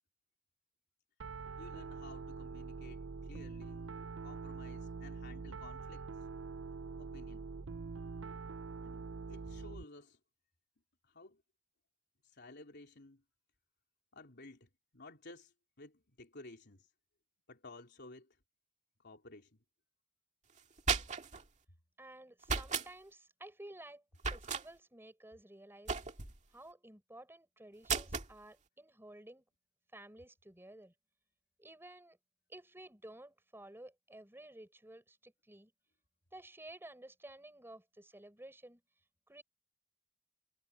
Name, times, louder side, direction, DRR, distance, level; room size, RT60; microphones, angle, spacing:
Piano, 1.2-9.8, right 4 dB, 70° right, 0.6 m, -45 dB
voice 1, 1.6-3.9 4.2-6.1 7.0-7.5 8.8-10.2 11.0-11.4 12.2-13.2 14.1-16.9 17.5-18.4 19.0-19.6, left 2 dB, 60° left, 3.6 m, -55 dB
sound 1, 20.6-21.4 22.4-22.9 24.2-24.7 25.9-26.4 27.9-28.3, right 5 dB, 40° right, 1.9 m, -35 dB
voice 2, 22.0-24.0 24.3-26.0 26.5-29.4 29.9-30.9 31.6-32.2 32.5-35.7 36.3-38.8 39.3-39.4, right 1 dB, 10° right, 6.3 m, -53 dB
head